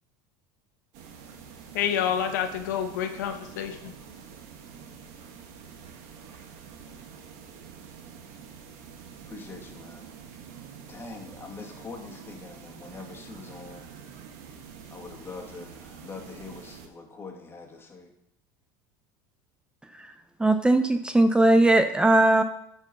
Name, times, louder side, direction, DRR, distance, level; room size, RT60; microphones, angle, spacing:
sound 1, 0.9-16.9, right 7 dB, 70° right, 1.5 m, -47 dB
voice 1, 1.7-3.9, left 9 dB, 90° left, 6 dB, 1.1 m, -28 dB
voice 2, 9.3-10.1 10.9-13.9 14.9-18.1, left 4 dB, 25° left, 1 dB, 1.9 m, -43 dB
voice 3, 20.4-22.4, right 2 dB, 10° right, 9 dB, 0.6 m, -19 dB
9.2 x 4.6 x 6.0 m, 0.79 s
supercardioid pair, 105°, 9 cm